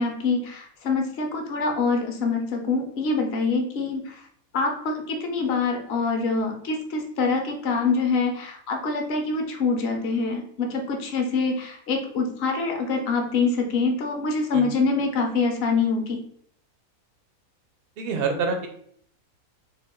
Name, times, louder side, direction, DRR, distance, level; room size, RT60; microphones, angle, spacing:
voice 1, 0.0-4.2 4.5-16.2, left 4 dB, 55° left, 2 dB, 0.8 m, -25 dB
voice 2, 18.0-18.7, right 4 dB, 65° right, 4 dB, 0.6 m, -26 dB
3.4 x 2.3 x 3.5 m, 0.63 s
omnidirectional pair, 1.5 m